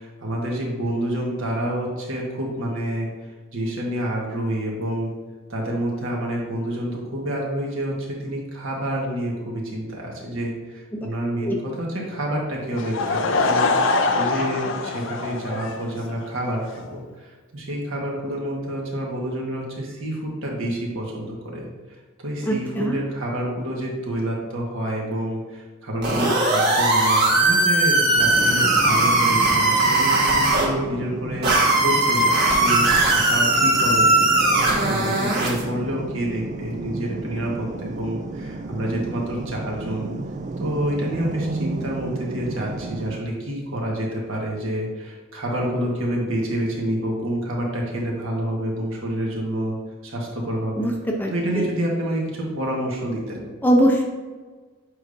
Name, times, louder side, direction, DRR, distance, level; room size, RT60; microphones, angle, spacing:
voice 1, 0.0-3.1 3.5-5.1 5.5-13.7 14.1-21.7 22.2-40.1 40.6-49.8 50.0-50.9 51.3-53.5, right 1 dB, 70° right, -2 dB, 1.5 m, -28 dB
Laughter / Crowd, 12.7-16.3, left 3 dB, 60° left, 0.5 m, -23 dB
voice 2, 22.4-23.0 50.8-50.9 51.2-51.6 53.6-54.1, right 1 dB, 10° left, 0 dB, 0.6 m, -21 dB
sound 1, 26.0-30.6 31.4-35.6, right 2 dB, 50° right, 1.7 m, -19 dB
sound 2, 28.2-43.2, right 2 dB, 35° right, 0.3 m, -32 dB
7.7 x 4.9 x 2.6 m, 1.4 s
head